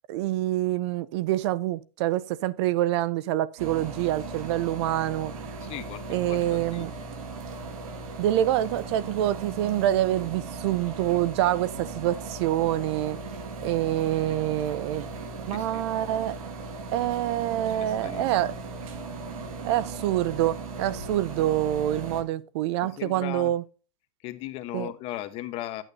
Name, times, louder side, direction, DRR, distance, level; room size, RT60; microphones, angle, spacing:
voice 1, 0.1-5.3 6.1-6.9 8.2-13.2 13.6-16.4 16.9-18.5 19.6-23.6 24.7-24.9, right 13 dB, 50° right, 0.5 m, -26 dB
sound 1, 3.6-22.2, right 3 dB, 75° right, 2.0 m, -38 dB
voice 2, 5.6-6.9 15.5-15.8 17.0-17.2 17.6-18.2 22.8-23.5 24.2-25.8, left 14 dB, 35° left, 1.0 m, -38 dB
10.0 x 8.9 x 2.7 m
supercardioid pair, 150°, 18 cm